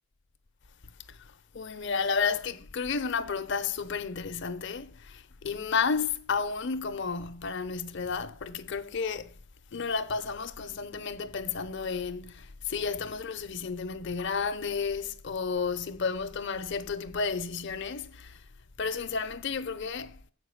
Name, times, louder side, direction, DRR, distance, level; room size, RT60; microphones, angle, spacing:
voice 1, 1.1-9.4 9.7-18.4 18.8-20.2, left 5 dB, 55° left, 0.6 m, -32 dB
7.5 x 5.2 x 6.3 m
head